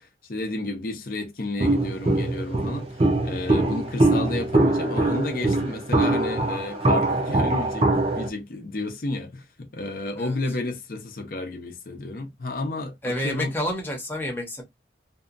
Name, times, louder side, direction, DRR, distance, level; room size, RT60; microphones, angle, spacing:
voice 1, 0.0-13.5, left 2 dB, 50° left, 0.6 m, -31 dB
Walk footsteps, 1.6-8.3, right 2 dB, 30° right, 0.6 m, -23 dB
voice 2, 13.0-14.7, left 1 dB, 10° left, 0.8 m, -29 dB
2.7 x 2.3 x 2.4 m
head